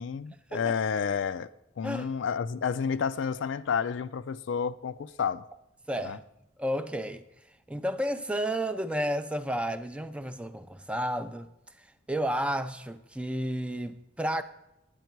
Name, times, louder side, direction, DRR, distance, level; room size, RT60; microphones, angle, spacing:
voice 1, 0.0-1.5 1.8-5.5 6.0-6.2, left 6 dB, 70° left, 0.4 m, -30 dB
voice 2, 5.9-6.2 6.6-7.2 7.7-11.5 12.1-14.4, equal, 5° right, 0.4 m, -31 dB
9.3 x 8.9 x 4.5 m
head